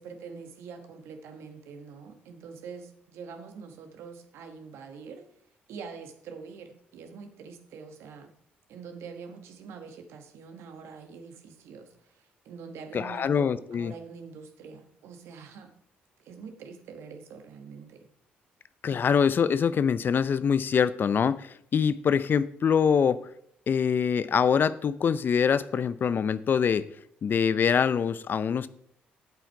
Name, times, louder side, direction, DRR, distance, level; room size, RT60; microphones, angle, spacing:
voice 1, 0.0-5.3 5.7-8.3 8.7-15.7 16.2-18.1 18.9-19.0, right 5 dB, 75° right, 6 dB, 1.3 m, -44 dB
voice 2, 12.9-13.9 18.8-23.2 23.7-26.9 27.2-28.7, left 7 dB, 50° left, 16 dB, 0.5 m, -24 dB
8.3 x 7.7 x 4.6 m, 0.70 s
supercardioid pair, 60°, 4 cm